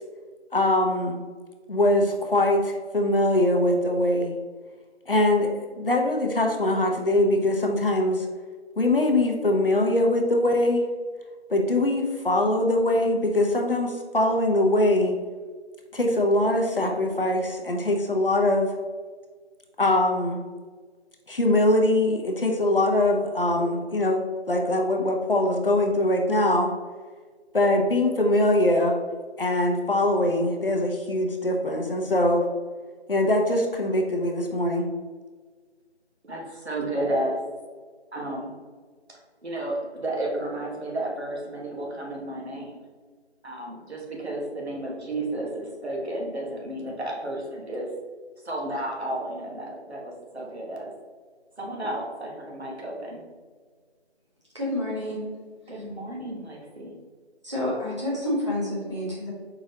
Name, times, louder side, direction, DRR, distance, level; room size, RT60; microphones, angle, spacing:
voice 1, 0.5-1.2 1.7-4.3 5.1-8.3 8.8-10.9 11.5-15.2 15.9-18.8 19.8-20.4 21.3-26.7 27.5-28.9 29.4-32.5 33.1-34.9, left 1 dB, 55° left, 2 dB, 0.7 m, -22 dB
voice 2, 36.2-37.4 38.1-38.6 39.1-42.8 43.4-47.9 48.4-50.9 51.6-53.2 55.7-57.0, right 1 dB, 70° right, -1 dB, 1.4 m, -32 dB
voice 3, 54.5-55.3 55.7-55.8 57.4-59.3, left 1 dB, 25° right, -7 dB, 1.2 m, -29 dB
5.0 x 3.9 x 2.7 m, 1.5 s
figure-of-eight pair, 175°, 34 cm